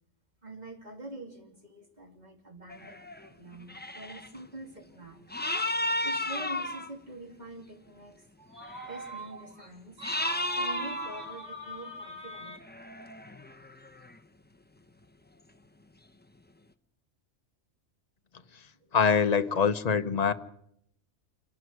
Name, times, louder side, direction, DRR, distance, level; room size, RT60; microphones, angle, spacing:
voice 1, 0.4-5.3 6.0-12.6 18.8-18.9, right 1 dB, 35° right, 4 dB, 3.2 m, -44 dB
sound 1, 2.7-3.3 3.6-4.4 5.3-6.9 8.6-9.2 10.0-11.3 12.5-14.2, left 1 dB, 10° left, 0.8 m, -33 dB
voice 2, 18.9-20.3, left 6 dB, 35° left, 10 dB, 1.0 m, -24 dB
27.0 x 11.5 x 9.6 m, 0.73 s
omnidirectional pair, 1.3 m